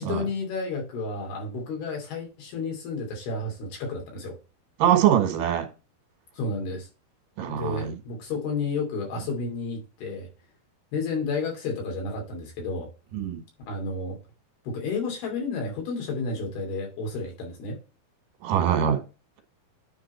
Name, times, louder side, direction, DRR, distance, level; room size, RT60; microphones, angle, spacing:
voice 1, 0.0-4.4 6.3-6.9 7.5-10.3 10.9-12.9 13.7-14.2 14.6-17.8, left 3 dB, 75° left, 4.7 m, -31 dB
voice 2, 4.8-5.7 7.4-8.0 13.1-13.4 18.4-19.0, right 10 dB, 60° right, 3.0 m, -23 dB
9.5 x 4.0 x 4.3 m
omnidirectional pair, 4.6 m